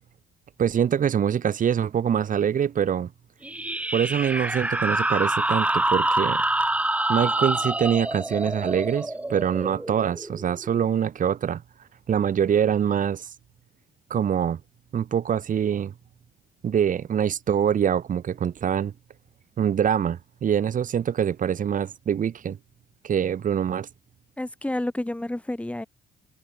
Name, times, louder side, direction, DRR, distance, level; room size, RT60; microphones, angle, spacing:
voice 1, 0.6-3.1 3.9-6.4 7.1-11.6 12.1-13.3 14.1-14.6 14.9-15.9 16.6-18.9 19.6-22.6 23.0-23.9, right 8 dB, 50° right, 5.8 m, -24 dB
sound 1, 3.4-10.7, right 1 dB, 10° right, 1.1 m, -26 dB
voice 2, 24.4-25.9, left 1 dB, 5° left, 6.2 m, -29 dB
cardioid pair, 115°, 17 cm